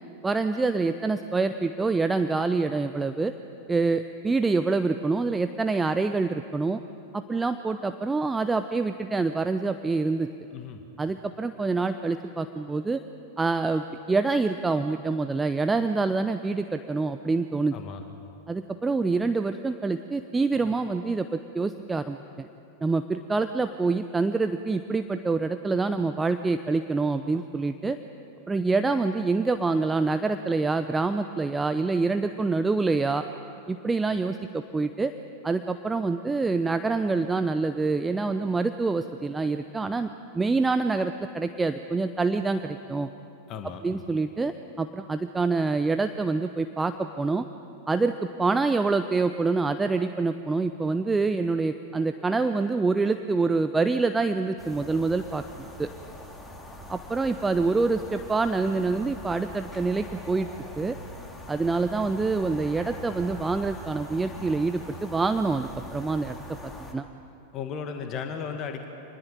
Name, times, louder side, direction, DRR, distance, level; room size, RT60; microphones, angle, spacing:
voice 1, 0.2-3.3 3.7-6.8 7.1-10.3 11.0-13.0 13.4-17.7 18.5-22.5 22.8-28.0 28.5-33.2 33.7-35.1 35.4-40.1 40.3-43.1 43.8-47.4 47.9-55.4 55.8-55.9 56.9-60.5 60.8-61.0 61.5-66.4 66.6-67.0, right 3 dB, 10° right, 9 dB, 0.8 m, -26 dB
voice 2, 10.5-10.8 17.7-18.0 43.5-43.8 67.5-68.9, left 6 dB, 35° left, 5 dB, 1.9 m, -35 dB
sound 1, 54.6-66.9, left 1 dB, 10° left, 2.8 m, -42 dB
26.5 x 20.0 x 9.2 m, 2.9 s
figure-of-eight pair, 90°, 0 cm